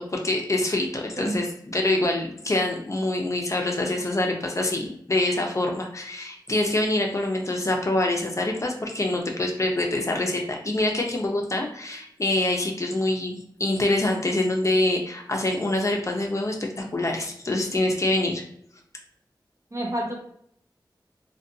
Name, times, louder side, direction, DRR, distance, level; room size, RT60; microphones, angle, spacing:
voice 1, 0.0-1.5 1.7-18.4, left 2 dB, 40° left, 1 dB, 0.5 m, -25 dB
voice 2, 1.2-1.5 19.7-20.2, right 1 dB, 40° right, 1 dB, 0.5 m, -29 dB
2.5 x 2.2 x 2.5 m, 0.68 s
wide cardioid pair, 60°, 8 cm